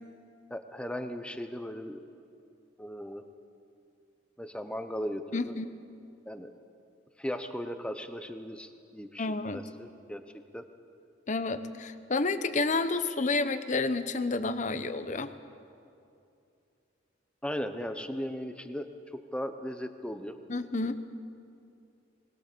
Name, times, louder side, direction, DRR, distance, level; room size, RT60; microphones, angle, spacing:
voice 1, 0.5-2.0 2.8-3.3 4.4-5.6 6.3-6.5 7.2-10.3 10.5-10.7 17.4-20.4, equal, 5° left, 8 dB, 0.9 m, -37 dB
voice 2, 5.3-5.7 9.2-9.6 11.3-15.3 20.5-21.0, left 3 dB, 40° left, 11 dB, 0.9 m, -30 dB
21.0 x 20.0 x 6.8 m, 2.6 s
head